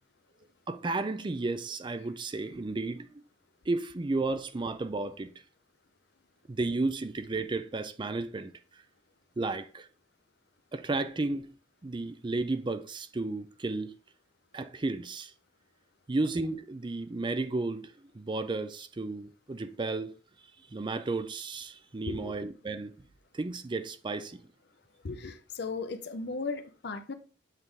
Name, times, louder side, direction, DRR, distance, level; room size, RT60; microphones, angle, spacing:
voice 1, 0.7-3.2 3.7-5.3 6.5-8.5 9.4-9.9 10.7-11.5 11.8-13.9 14.5-15.3 16.1-20.1 20.7-22.9 23.3-24.4, right 3 dB, 25° right, 0.4 m, -33 dB
voice 2, 22.1-22.4 25.0-27.1, left 4 dB, 60° left, 0.6 m, -36 dB
8.2 x 3.7 x 3.3 m
head